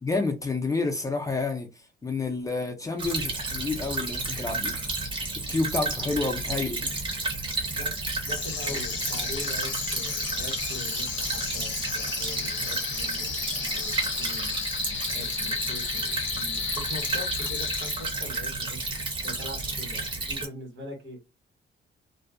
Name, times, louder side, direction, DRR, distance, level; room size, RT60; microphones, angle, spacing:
voice 1, 0.0-1.7 2.0-4.8 5.5-6.9 8.7-8.8, left 3 dB, 15° left, 0.3 m, -29 dB
Stream / Trickle dribble, 3.0-20.5, right 3 dB, 25° right, 0.6 m, -31 dB
voice 2, 5.2-5.6 6.8-6.9 7.6-14.5 15.1-18.8 19.2-21.2, left 1 dB, 80° right, 1.4 m, -42 dB
sound 1, 8.2-18.4, left 7 dB, 75° left, 0.5 m, -34 dB
2.5 x 2.0 x 2.4 m
wide cardioid pair, 175°, 20 cm